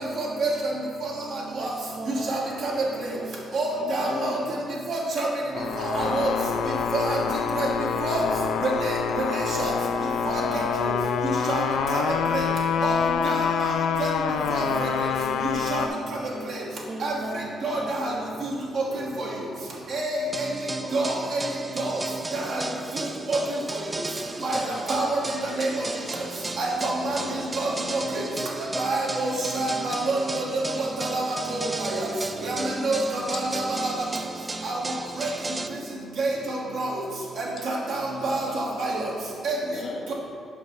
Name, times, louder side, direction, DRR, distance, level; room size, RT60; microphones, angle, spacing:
voice 1, 0.2-0.5 1.6-1.7 2.3-2.7 3.5-4.4 4.9-5.3 6.0-6.3 6.9-7.2 7.6-7.7 8.0-8.2 8.8-8.9 9.3-9.7 10.5-10.6 11.5-11.6 11.9-12.0 12.8-13.0 13.2-13.3 13.6-13.7 14.0-14.1 14.5-14.9 15.7-15.8 17.0-17.1 17.6-18.1 18.8-18.9 19.9-20.1 20.9-21.4 21.8-21.9 22.5-22.6 23.3-23.4 24.4-24.6 24.9-25.1 25.6-25.7 26.6-27.2 27.6-27.7 28.8-29.3 29.5-30.2 31.0-31.2 31.9-32.0 32.4-32.5 32.8-33.6 34.6-34.7 35.2-35.3 36.2-36.3 36.8-36.9 37.6-38.9 39.4-39.5, right 3 dB, 65° right, -3 dB, 1.5 m, -27 dB
voice 2, 1.6-2.3 3.0-3.5 6.0-6.5 6.8-7.0 10.2-10.8 12.8-13.4 15.3-15.6 15.9-16.0 16.9-17.5, right 2 dB, 40° right, 3 dB, 0.8 m, -40 dB
voice 3, 2.4-2.8 3.4-4.7 17.7-18.3 20.8-21.3 24.4-25.0 27.0-27.8 30.8-30.9 31.6-31.7 33.3-33.9 35.0-35.3 37.6-38.7 39.5-40.1, left 3 dB, 55° left, 3 dB, 0.7 m, -40 dB
sound 1, 5.5-15.9, left 7 dB, 80° left, 0.3 m, -26 dB
sound 2, 20.3-35.7, right 2 dB, 20° right, 0.4 m, -34 dB
5.6 x 5.3 x 4.8 m, 2.2 s
cardioid pair, 90°, 0 cm